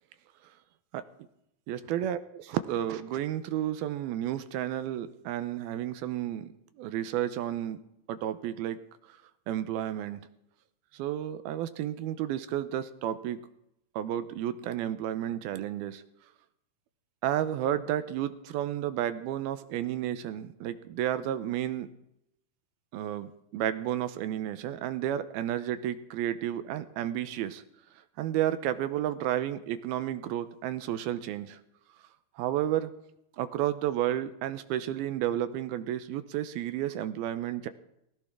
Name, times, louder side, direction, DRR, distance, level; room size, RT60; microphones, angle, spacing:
voice 1, 1.7-6.5 6.8-7.8 8.1-8.8 9.5-10.2 10.9-13.4 14.0-16.0 17.2-21.9 22.9-27.6 28.2-31.6 32.4-32.9 33.4-37.7, right 11 dB, 80° right, 12 dB, 2.7 m, -32 dB
19.5 x 17.0 x 3.7 m, 0.78 s
omnidirectional pair, 4.4 m